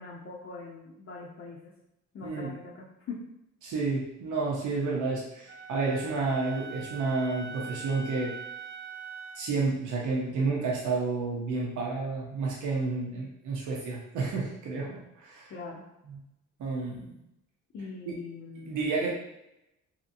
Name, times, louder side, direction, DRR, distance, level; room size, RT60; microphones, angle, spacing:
voice 1, 0.0-1.7 2.1-3.2 15.5-15.8 17.7-18.9, left 4 dB, 50° left, -5 dB, 0.7 m, -42 dB
voice 2, 3.6-8.3 9.3-15.5 16.1-16.2 16.6-17.2 18.7-19.1, right 3 dB, 75° right, -3 dB, 0.8 m, -30 dB
Wind instrument woodwind instrument, 5.5-9.5, right 6 dB, 40° right, 0.4 m, -42 dB
2.8 x 2.8 x 2.6 m, 0.86 s
cardioid pair, 90°, 30 cm